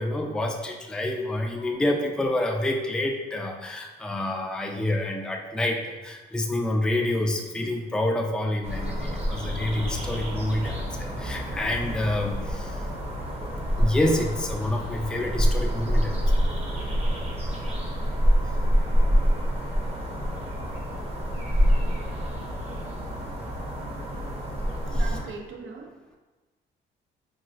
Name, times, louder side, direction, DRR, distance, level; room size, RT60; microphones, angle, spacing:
voice 1, 0.0-12.9 13.8-16.4 17.5-17.6 18.2-18.8, left 1 dB, 5° left, 1 dB, 0.3 m, -28 dB
sound 1, 8.6-25.2, equal, 30° right, 0.7 m, -27 dB
voice 2, 24.9-26.2, right 4 dB, 70° right, 2 dB, 0.6 m, -40 dB
3.9 x 2.3 x 2.4 m, 1.2 s
cardioid pair, 90°, 20 cm